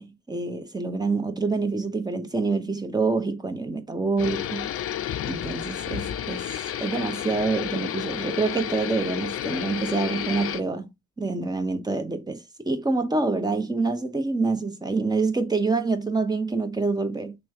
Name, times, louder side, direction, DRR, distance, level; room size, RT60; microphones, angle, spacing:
voice 1, 0.0-4.7 5.3-6.5 6.8-10.9 11.2-17.4, right 3 dB, 15° right, 0.7 m, -26 dB
sound 1, 4.2-10.6, left 11 dB, 50° left, 0.4 m, -31 dB
3.2 x 3.1 x 3.4 m
cardioid pair, 90°, 30 cm